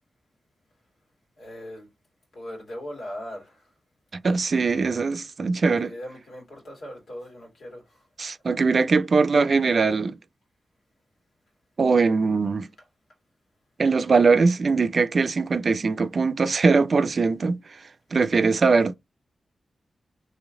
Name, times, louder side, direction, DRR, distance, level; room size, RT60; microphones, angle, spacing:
voice 1, 1.4-1.9 2.3-3.6 5.8-7.8, equal, 85° left, 2.2 m, -39 dB
voice 2, 4.2-5.9 8.2-10.1 11.8-12.7 13.8-17.6 18.1-18.9, right 4 dB, 60° right, 0.5 m, -21 dB
3.1 x 2.9 x 3.7 m
cardioid pair, 50°, 0 cm